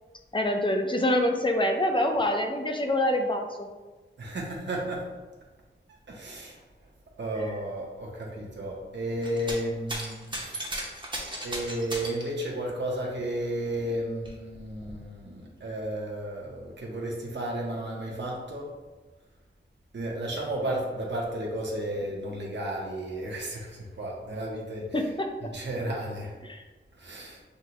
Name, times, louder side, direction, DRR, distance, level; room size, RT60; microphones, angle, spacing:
voice 1, 0.3-3.7 24.9-25.3 26.4-26.6, left 1 dB, 25° left, 3 dB, 0.5 m, -26 dB
voice 2, 4.2-5.2 6.1-6.6 7.2-10.8 11.4-18.8 19.9-24.9 25.5-26.3 27.0-27.4, right 1 dB, 60° right, -2 dB, 0.8 m, -33 dB
sound 1, 9.2-9.6 9.9-12.3 13.4-13.5 13.9-14.9 15.8-15.9, right 1 dB, 25° right, 0.7 m, -36 dB
6.4 x 2.2 x 2.8 m, 1.2 s
wide cardioid pair, 100°, 20 cm